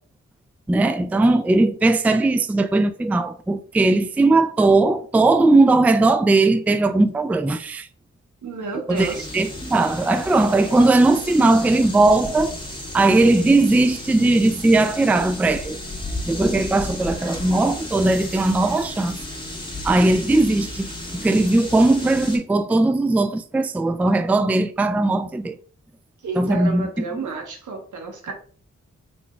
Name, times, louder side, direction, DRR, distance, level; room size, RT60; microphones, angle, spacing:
voice 1, 0.7-7.9 8.9-9.1 9.3-12.6 12.9-15.8 16.2-19.2 19.8-25.6 26.4-26.9, right 2 dB, 5° right, 0.3 m, -18 dB
voice 2, 8.4-9.3 26.2-28.3, right 3 dB, 80° right, 1.1 m, -30 dB
sound 1, 8.9-22.4, left 1 dB, 15° left, 1.6 m, -34 dB
3.7 x 3.7 x 2.3 m
supercardioid pair, 40°, 30 cm